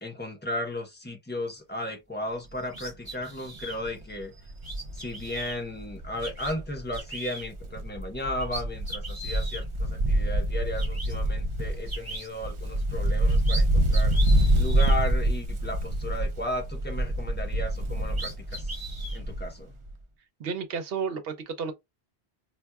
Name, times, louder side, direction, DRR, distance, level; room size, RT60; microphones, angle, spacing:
voice 1, 0.0-4.3 4.9-14.2 14.6-18.8 19.1-19.8, left 1 dB, 10° left, 0.8 m, -35 dB
Wind, 2.5-2.8 3.2-3.3 3.6-7.1 7.4-19.6 19.9-20.0, right 1 dB, 45° right, 0.4 m, -26 dB
sound 1, 2.7-3.8 4.6-5.6 6.2-6.5 6.9-7.5 8.0-8.1 8.4-9.6 10.4-10.5 10.8-11.1 11.9-12.3 13.1-13.6 13.9-15.0 17.7-17.8 18.1-19.2, right 2 dB, 20° right, 1.2 m, -39 dB
voice 2, 20.4-21.7, right 5 dB, 65° right, 0.8 m, -32 dB
4.3 x 2.3 x 2.3 m
omnidirectional pair, 1.1 m